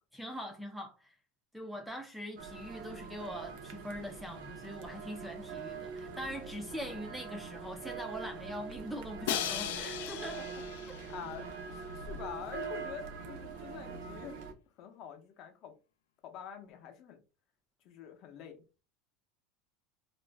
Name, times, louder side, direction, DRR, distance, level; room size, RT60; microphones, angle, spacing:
voice 1, 0.1-1.1 1.5-10.4 10.9-11.0, equal, ahead, 0.3 m, -42 dB
sound 1, 2.4-14.5, right 5 dB, 65° right, 0.5 m, -44 dB
Crash cymbal, 9.3-11.3, left 10 dB, 85° left, 0.3 m, -37 dB
voice 2, 11.1-14.4 14.8-15.7 16.2-17.2 17.8-18.6, left 8 dB, 40° left, 0.6 m, -46 dB
2.4 x 2.0 x 3.2 m
supercardioid pair, 165°, 0 cm